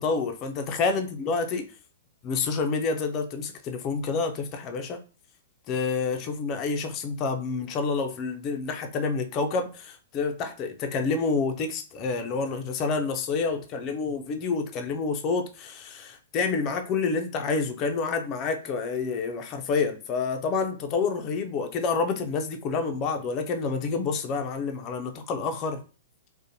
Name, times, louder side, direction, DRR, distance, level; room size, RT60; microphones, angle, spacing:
voice 1, 0.0-1.7 2.2-5.0 5.7-25.8, left 4 dB, 35° left, 0.4 m, -28 dB
2.5 x 2.1 x 2.7 m
hypercardioid pair, 120°, 0 cm